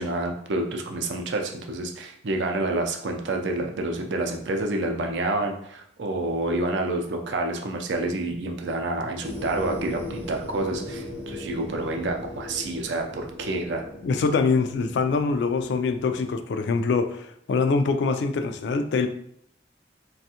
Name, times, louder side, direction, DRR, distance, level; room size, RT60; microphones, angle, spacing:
voice 1, 0.0-13.8, right 2 dB, 75° right, 3 dB, 0.5 m, -28 dB
sound 1, 9.2-16.4, left 1 dB, 35° right, 0.7 m, -38 dB
voice 2, 14.0-19.1, left 4 dB, 65° left, 8 dB, 0.3 m, -24 dB
3.3 x 2.3 x 2.8 m, 0.68 s
head